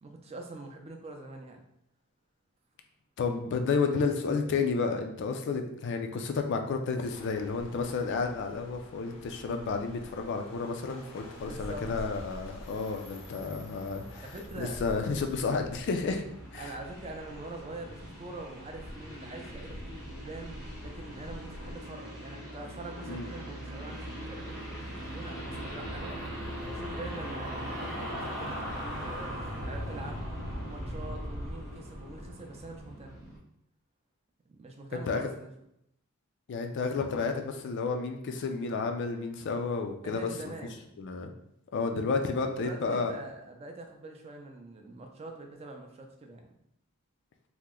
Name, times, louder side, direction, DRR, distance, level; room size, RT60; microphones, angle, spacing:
voice 1, 0.0-1.6 11.4-11.9 13.4-13.5 14.1-14.8 16.6-26.2 26.7-30.2 30.6-33.1 34.5-35.5 40.0-40.9 42.2-46.5, right 2 dB, 30° right, 3 dB, 0.4 m, -44 dB
voice 2, 3.2-14.3 14.6-16.2 16.5-16.7 23.1-23.3 35.1-35.3 36.5-40.5 41.0-41.3 41.7-43.1, left 4 dB, 55° left, 5 dB, 0.3 m, -31 dB
sound 1, 7.1-21.7, equal, 85° left, 0.7 m, -48 dB
sound 2, 13.8-33.4, equal, ahead, 0.8 m, -40 dB
2.9 x 2.0 x 3.6 m, 0.78 s
head